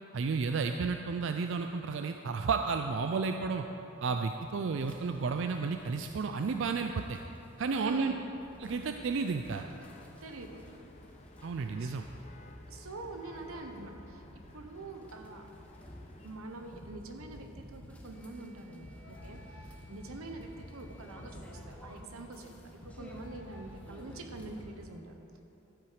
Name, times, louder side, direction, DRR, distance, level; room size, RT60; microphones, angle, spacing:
voice 1, 0.1-3.7 4.0-7.2 7.6-8.1 8.6-9.7 11.4-12.0, right 4 dB, 60° right, 6 dB, 0.4 m, -32 dB
sound 1, 4.7-24.6, equal, 5° left, 0.9 m, -54 dB
voice 2, 7.8-8.2 10.2-10.6 11.8-11.9 12.7-14.2 14.5-15.5 16.2-22.5 22.8-25.4, right 2 dB, 90° right, 5 dB, 1.0 m, -45 dB
sound 2, 8.6-16.4, left 2 dB, 30° left, 0.6 m, -55 dB
sound 3, 16.8-18.1 18.8-24.8, left 1 dB, 55° left, 1.3 m, -50 dB
12.5 x 7.7 x 5.0 m, 3.0 s
head